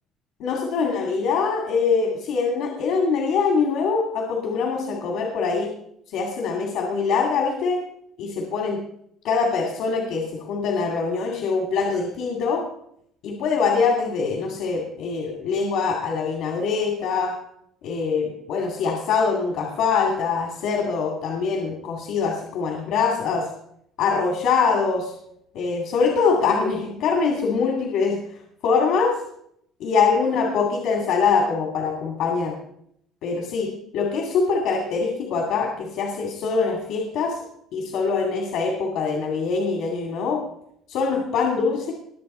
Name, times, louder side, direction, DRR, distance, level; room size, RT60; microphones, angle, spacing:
voice 1, 0.4-5.7 6.1-7.8 8.2-8.8 9.2-12.6 13.2-17.3 17.8-23.5 24.0-25.1 25.5-28.2 28.6-29.1 29.8-32.5 33.2-33.7 33.9-37.4 37.7-40.4 40.9-41.9, left 5 dB, 65° left, 1 dB, 2.3 m, -23 dB
20.5 x 7.5 x 4.3 m, 0.72 s
cardioid pair, 155°, 0 cm